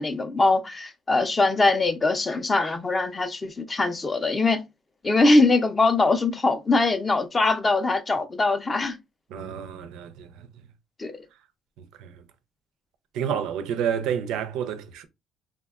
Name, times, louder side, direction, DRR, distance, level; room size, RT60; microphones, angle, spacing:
voice 1, 0.0-4.6 5.0-9.0 11.0-11.1, left 3 dB, 20° left, 0.3 m, -22 dB
voice 2, 9.3-10.5 12.0-12.2 13.1-15.0, right 8 dB, 90° right, 0.4 m, -29 dB
3.4 x 2.1 x 2.3 m
cardioid pair, 155°, 0 cm